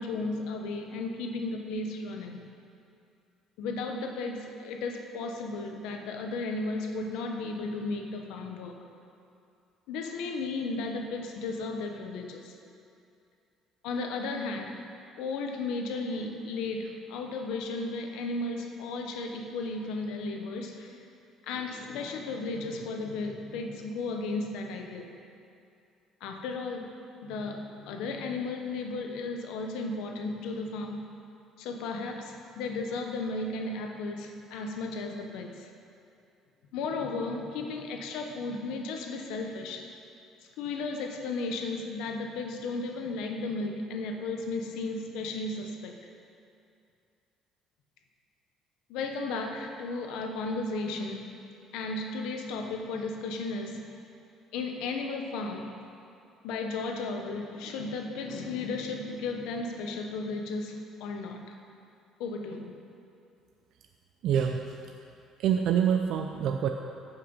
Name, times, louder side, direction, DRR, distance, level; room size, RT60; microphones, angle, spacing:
voice 1, 0.0-2.5 3.6-8.8 9.9-12.5 13.8-14.8 15.2-21.0 21.5-25.1 26.2-26.9 27.2-31.0 31.6-35.7 36.7-39.9 40.6-46.0 48.9-51.3 51.7-53.9 54.5-55.8 56.4-61.4 62.2-62.7, left 3 dB, 85° left, 3 dB, 1.1 m, -34 dB
voice 2, 64.2-65.1 65.4-66.7, right 8 dB, 70° right, 4 dB, 0.5 m, -27 dB
14.0 x 5.9 x 5.5 m, 2.6 s
cardioid pair, 110°, 0 cm